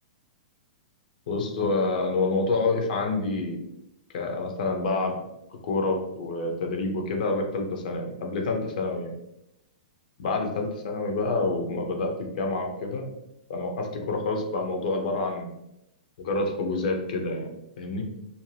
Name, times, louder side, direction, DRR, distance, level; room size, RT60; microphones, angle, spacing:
voice 1, 1.3-3.6 4.1-5.2 5.5-9.1 10.2-13.1 13.5-15.5 16.2-18.0, left 3 dB, 65° left, 3 dB, 0.6 m, -28 dB
2.6 x 2.2 x 3.2 m, 0.85 s
hypercardioid pair, 115°, 5 cm